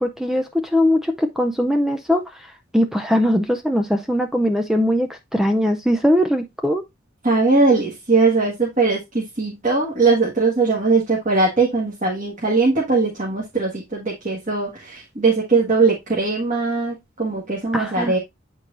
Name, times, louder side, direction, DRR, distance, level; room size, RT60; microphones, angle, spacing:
voice 1, 0.0-6.8 17.7-18.1, equal, ahead, 0.5 m, -20 dB
voice 2, 7.2-18.2, right 3 dB, 40° right, 1.7 m, -20 dB
8.4 x 4.5 x 2.5 m
head